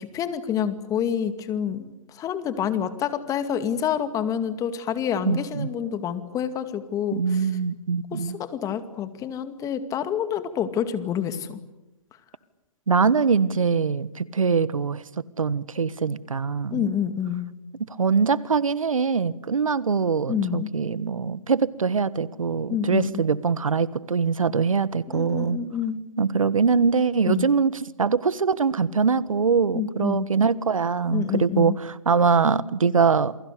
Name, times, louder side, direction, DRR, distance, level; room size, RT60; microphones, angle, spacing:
voice 1, 0.0-1.9 2.2-7.5 8.1-11.6 16.7-17.5 20.3-20.7 22.7-23.2 25.1-26.1 27.3-27.5 29.7-30.3 31.1-31.8, left 8 dB, 20° left, 11 dB, 2.2 m, -28 dB
voice 2, 5.2-5.7 7.1-8.4 12.9-15.0 15.4-16.8 18.0-25.6 26.2-27.7 28.0-33.4, right 5 dB, 85° right, 18 dB, 1.4 m, -23 dB
28.5 x 23.0 x 8.4 m, 0.95 s
hypercardioid pair, 135°, 17 cm